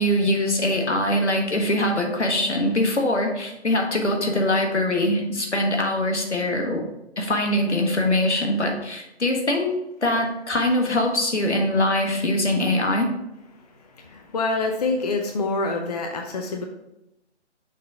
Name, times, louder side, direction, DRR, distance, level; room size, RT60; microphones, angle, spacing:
voice 1, 0.0-6.8 7.2-9.7 10.0-13.1, left 1 dB, 80° left, 2 dB, 1.5 m, -22 dB
voice 2, 13.9-16.6, left 3 dB, 35° left, 3 dB, 0.6 m, -26 dB
6.4 x 3.7 x 4.4 m, 0.87 s
figure-of-eight pair, 140°, 34 cm